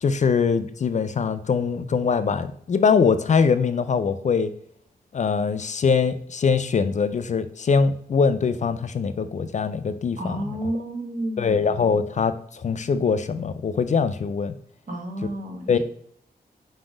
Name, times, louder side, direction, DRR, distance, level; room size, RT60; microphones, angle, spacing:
voice 1, 0.0-4.5 5.1-10.6 11.4-14.6 15.7-15.8, left 5 dB, 45° left, 11 dB, 0.4 m, -22 dB
voice 2, 10.2-12.0 14.9-15.8, right 1 dB, 55° right, 1 dB, 1.4 m, -31 dB
4.8 x 4.0 x 4.9 m, 0.62 s
wide cardioid pair, 155°, 17 cm